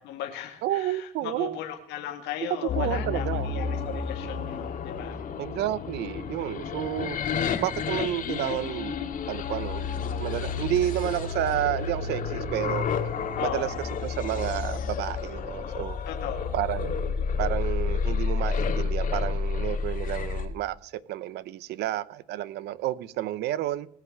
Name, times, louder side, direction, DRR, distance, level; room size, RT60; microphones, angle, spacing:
voice 1, 0.0-5.2 13.3-13.8 16.1-16.6, left 10 dB, 90° left, 2.1 m, -36 dB
voice 2, 0.6-1.6 2.6-3.5 5.4-7.2 7.6-9.0 9.3-9.9 10.2-12.9 13.4-13.7 14.0-16.0 16.5-16.9 17.4-23.9, right 14 dB, 80° right, 0.7 m, -30 dB
sound 1, 2.7-20.5, left 5 dB, 55° left, 2.0 m, -30 dB
20.0 x 6.7 x 6.4 m
cardioid pair, 110°, 17 cm